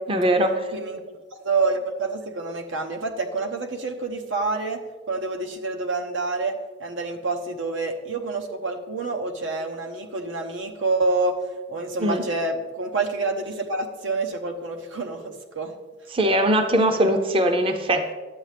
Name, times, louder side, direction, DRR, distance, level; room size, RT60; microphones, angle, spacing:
voice 1, 0.1-0.6 12.0-12.2 16.1-18.1, right 1 dB, 30° right, 6 dB, 0.6 m, -21 dB
voice 2, 0.7-1.0 1.4-4.8 5.1-11.4 11.7-15.7, right 3 dB, 80° right, 4 dB, 0.9 m, -27 dB
11.0 x 7.4 x 3.4 m, 1.3 s
head